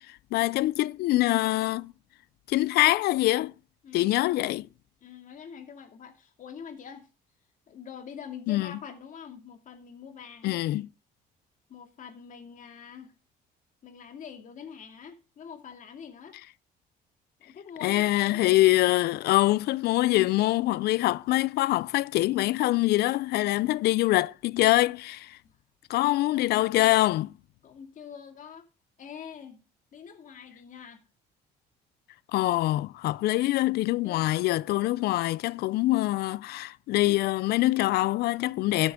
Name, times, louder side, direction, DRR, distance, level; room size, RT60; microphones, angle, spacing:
voice 1, 0.0-1.9 2.5-3.5 3.9-4.7 8.5-8.7 10.4-10.9 17.8-25.4 25.9-27.3 32.3-38.9, left 17 dB, 70° left, 0.4 m, -24 dB
voice 2, 3.8-4.6 5.0-7.1 7.7-10.5 11.7-13.1 13.8-16.4 17.4-18.5 25.4-25.6 27.6-28.7 29.0-29.7 29.9-31.0 34.0-34.3, left 7 dB, 50° left, 2.4 m, -45 dB
13.0 x 7.7 x 3.7 m
cardioid pair, 110°, 17 cm